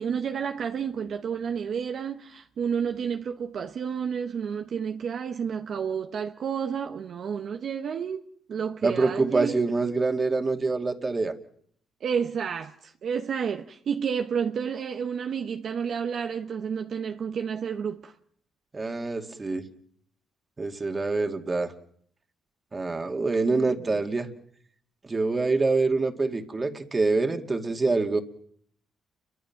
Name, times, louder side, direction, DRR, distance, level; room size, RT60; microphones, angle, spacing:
voice 1, 0.0-8.2 8.5-9.6 12.0-18.1 23.8-24.0, right 7 dB, 60° right, 1.1 m, -30 dB
voice 2, 8.8-11.3 18.7-19.6 20.6-21.7 22.7-24.3 25.0-28.2, right 3 dB, 30° right, 2.3 m, -25 dB
29.5 x 23.5 x 5.9 m
cardioid pair, 90°, 0 cm